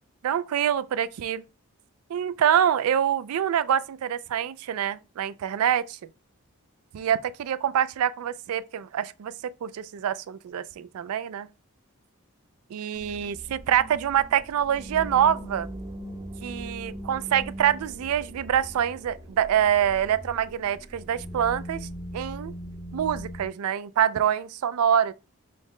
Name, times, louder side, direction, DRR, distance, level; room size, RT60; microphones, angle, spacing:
voice 1, 0.2-1.4 2.1-6.0 6.9-9.3 9.6-11.5 12.7-15.7 16.4-21.9 22.1-22.5 22.9-25.1, right 9 dB, 80° right, 0.3 m, -25 dB
sound 1, 12.9-23.5, equal, 15° right, 0.7 m, -40 dB
5.5 x 2.1 x 3.0 m
head